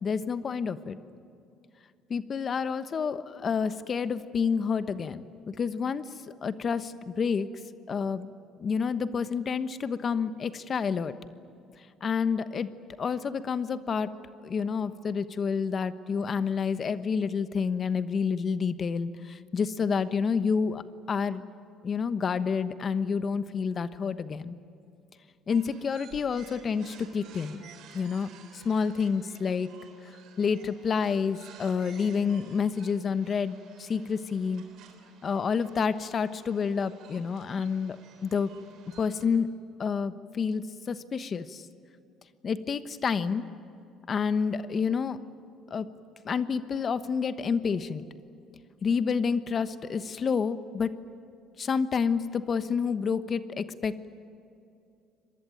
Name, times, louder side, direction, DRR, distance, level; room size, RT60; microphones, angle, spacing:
voice 1, 0.0-1.0 2.1-7.5 7.9-8.3 8.6-11.2 12.0-12.7 13.0-14.1 14.4-20.8 21.1-21.4 21.8-24.6 25.5-27.6 27.9-29.7 30.0-34.6 35.2-38.0 38.2-38.5 39.0-39.5 39.8-41.6 42.4-43.5 44.1-45.2 45.7-45.9 46.2-48.0 48.8-50.9 51.6-54.1, left 6 dB, 45° left, 12 dB, 1.1 m, -29 dB
sound 1, 25.5-39.2, right 7 dB, 70° right, 3.8 m, -54 dB
25.5 x 20.0 x 9.2 m, 2.6 s
supercardioid pair, 75°, 0 cm